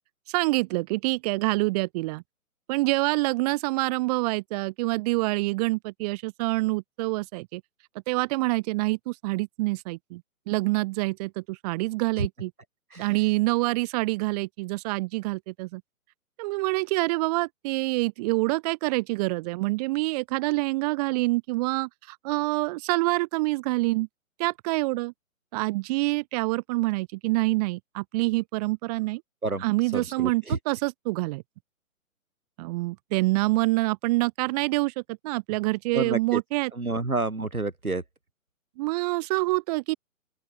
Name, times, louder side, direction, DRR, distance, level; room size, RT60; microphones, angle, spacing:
voice 1, 0.3-2.2 2.7-7.6 8.1-12.5 13.0-15.8 16.4-24.1 24.4-25.1 25.5-29.2 29.6-31.4 32.6-34.9 35.2-36.7 38.8-40.0, right 22 dB, 25° right, 2.9 m, -26 dB
voice 2, 29.9-30.6 35.9-36.4 36.7-38.0, right 3 dB, 90° right, 3.3 m, -29 dB
open air
figure-of-eight pair, 135°, 42 cm